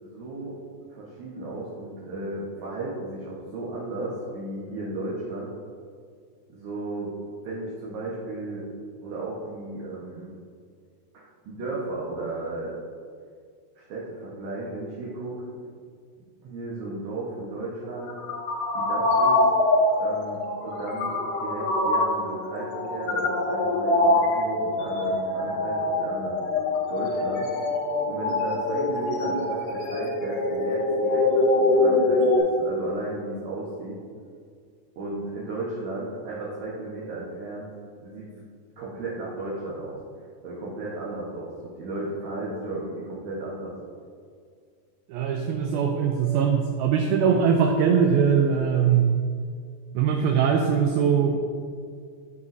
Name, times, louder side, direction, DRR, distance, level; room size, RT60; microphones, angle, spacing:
voice 1, 0.0-0.6 0.9-5.5 6.5-7.1 7.4-8.6 9.0-10.3 11.1-12.8 13.8-15.7 16.4-18.1 18.7-19.4 20.0-26.4 26.9-27.5 28.0-34.0 35.0-37.7 38.0-38.3 38.8-40.0 40.4-43.8, right 2 dB, 65° right, -7 dB, 2.0 m, -34 dB
sound 1, 17.9-32.4, left 2 dB, 80° left, 3.1 m, -24 dB
voice 2, 45.1-49.1 50.0-51.4, right 7 dB, 80° right, 3 dB, 2.2 m, -21 dB
13.5 x 5.5 x 2.6 m, 2.1 s
omnidirectional pair, 4.7 m